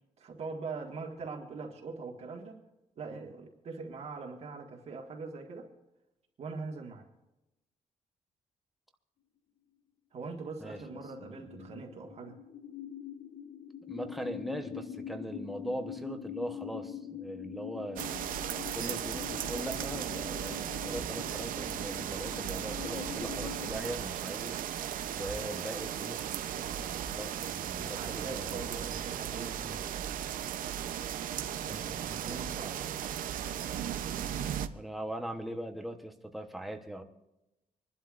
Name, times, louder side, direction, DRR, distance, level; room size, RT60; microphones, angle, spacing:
voice 1, 0.2-2.6 3.0-5.7 6.4-7.1 10.1-12.4 27.8-29.9 31.6-33.0, right 4 dB, 50° right, 0 dB, 1.7 m, -42 dB
sound 1, 10.6-23.7, left 9 dB, 55° left, 0.8 m, -44 dB
voice 2, 11.2-11.7 13.9-18.1 18.7-24.6 25.1-26.3 26.5-28.7 34.3-37.0, right 1 dB, ahead, 4 dB, 1.0 m, -40 dB
sound 2, 18.0-34.7, right 10 dB, 75° right, 0.7 m, -36 dB
27.0 x 11.5 x 2.5 m, 0.95 s
wide cardioid pair, 170°, 14 cm